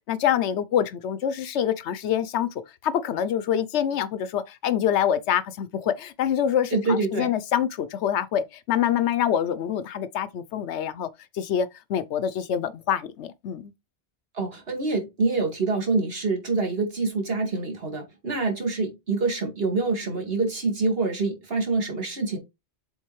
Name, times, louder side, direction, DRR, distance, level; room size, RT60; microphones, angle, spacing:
voice 1, 0.1-2.5 2.8-11.1 11.3-13.7, left 9 dB, 75° left, 0.9 m, -25 dB
voice 2, 6.7-7.3 14.3-22.4, right 3 dB, 55° right, 2.2 m, -26 dB
7.3 x 4.1 x 3.1 m
omnidirectional pair, 1.2 m